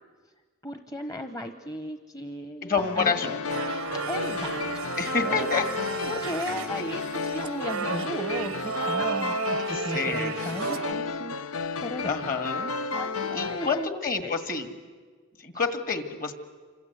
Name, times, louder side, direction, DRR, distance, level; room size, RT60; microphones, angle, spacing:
voice 1, 0.6-3.4 4.1-4.9 5.2-5.5 6.1-11.4 11.8-12.1 12.9-14.4, equal, 20° left, 7 dB, 1.0 m, -36 dB
voice 2, 2.6-3.4 5.0-6.1 9.7-10.6 12.0-12.7 13.3-14.7 15.4-16.3, left 5 dB, 40° left, 9 dB, 1.9 m, -29 dB
sound 1, 2.8-13.9, left 4 dB, 90° left, 0.8 m, -32 dB
sound 2, 3.5-10.9, right 6 dB, 80° right, 0.7 m, -33 dB
28.0 x 25.5 x 8.1 m, 1.5 s
head